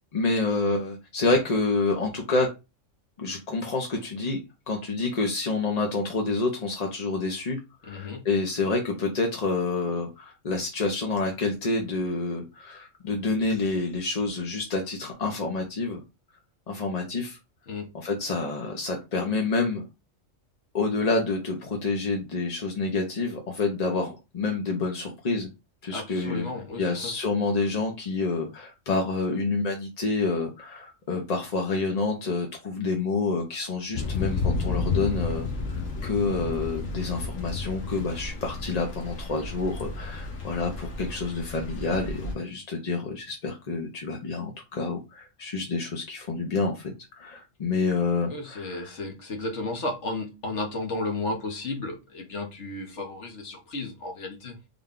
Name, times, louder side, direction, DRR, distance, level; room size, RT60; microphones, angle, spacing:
voice 1, 0.1-2.5 3.2-16.0 16.7-17.4 17.9-19.8 20.7-25.5 25.8-26.5 26.8-48.9, left 3 dB, 40° left, 0.6 m, -28 dB
voice 2, 7.8-8.2 17.7-17.9 25.9-27.1 48.2-54.6, left 2 dB, 65° left, 1.2 m, -33 dB
Thunder / Rain, 33.9-42.3, left 4 dB, 85° left, 1.3 m, -32 dB
3.7 x 2.2 x 3.6 m
omnidirectional pair, 1.3 m